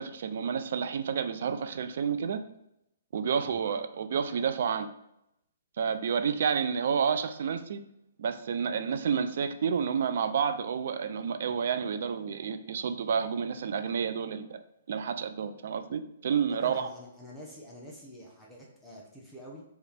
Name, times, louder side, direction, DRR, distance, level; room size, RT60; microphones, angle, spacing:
voice 1, 0.0-2.4 3.1-4.9 5.8-7.8 8.2-14.6 14.9-16.9, right 7 dB, 55° right, 9 dB, 0.3 m, -30 dB
voice 2, 16.5-19.6, equal, 5° left, -5 dB, 0.7 m, -47 dB
3.2 x 2.3 x 4.3 m, 0.81 s
figure-of-eight pair, 120°, 0 cm